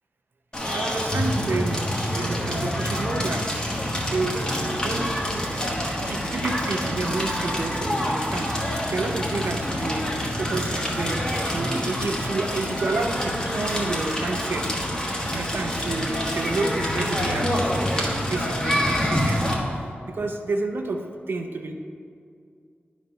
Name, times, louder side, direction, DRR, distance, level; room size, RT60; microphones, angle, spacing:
Crackle, 0.5-19.5, equal, 20° left, 1.3 m, -26 dB
voice 1, 0.7-3.6 4.1-14.7 15.3-21.7, right 3 dB, 65° right, 3 dB, 0.6 m, -30 dB
10.5 x 4.0 x 5.5 m, 2.3 s
wide cardioid pair, 120°, 4 cm